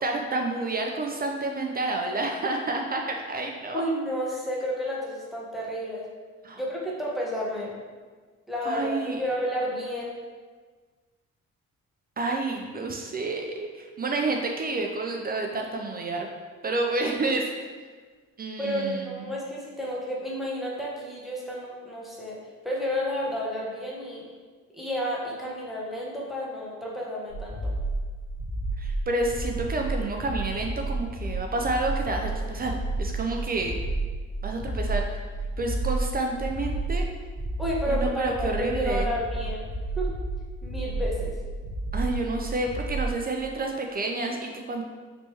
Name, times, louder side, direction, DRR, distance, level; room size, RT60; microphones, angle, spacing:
voice 1, 0.0-3.8 6.4-6.6 8.6-9.2 12.2-16.3 16.6-17.7 18.4-19.3 28.8-33.8 34.4-35.0 35.6-37.1 37.8-39.1 41.9-44.8, right 2 dB, 30° right, 2 dB, 0.4 m, -29 dB
voice 2, 3.7-6.1 6.6-7.7 8.5-10.2 18.6-22.4 22.6-24.2 24.7-27.7 37.6-39.7 40.0-40.1 40.6-41.3, equal, ahead, -4 dB, 0.8 m, -31 dB
sound 1, 27.3-43.1, right 2 dB, 40° left, 0.7 m, -31 dB
3.1 x 2.9 x 3.3 m, 1.4 s
cardioid pair, 90°, 30 cm